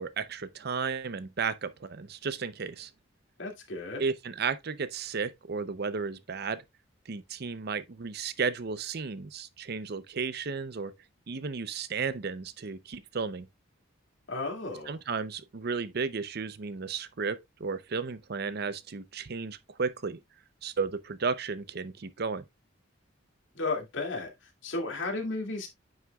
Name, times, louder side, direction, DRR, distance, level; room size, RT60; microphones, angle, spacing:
voice 1, 0.0-2.9 4.0-6.6 7.1-10.9 11.3-13.5 14.9-20.2 20.6-22.4, right 5 dB, 55° right, 0.6 m, -33 dB
voice 2, 3.4-4.0 14.3-14.9 23.5-25.7, left 3 dB, 70° left, 2.4 m, -34 dB
9.3 x 6.5 x 2.3 m
head